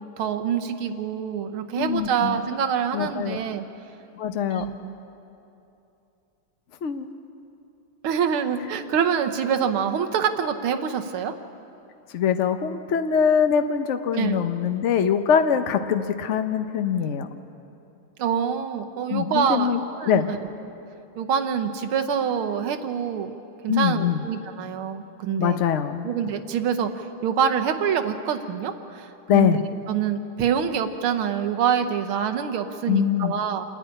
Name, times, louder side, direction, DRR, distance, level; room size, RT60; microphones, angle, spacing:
voice 1, 0.0-3.6 4.5-5.0 8.0-11.3 14.1-14.5 18.2-20.4 21.2-23.4 23.6-25.6 26.0-29.5 29.9-33.6, right 7 dB, 80° right, 6 dB, 1.8 m, -26 dB
voice 2, 1.8-2.4 2.9-3.4 4.2-4.7 6.8-7.1 12.1-17.3 19.1-20.3 23.7-24.2 25.4-26.1 29.3-29.6 32.9-33.3, left 8 dB, 80° left, 8 dB, 0.6 m, -23 dB
27.5 x 9.8 x 9.9 m, 2.8 s
omnidirectional pair, 2.4 m